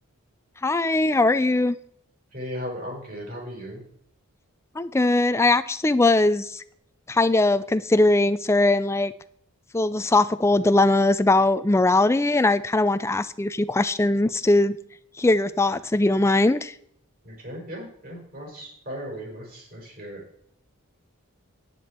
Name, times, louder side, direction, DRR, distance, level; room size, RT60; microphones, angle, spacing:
voice 1, 0.6-1.8 4.8-6.6 7.1-9.1 9.7-14.8 15.2-16.7, left 2 dB, 10° left, 14 dB, 0.3 m, -20 dB
voice 2, 2.3-3.8 17.2-20.2, equal, 40° right, -2 dB, 5.0 m, -36 dB
10.5 x 9.2 x 4.3 m, 0.69 s
head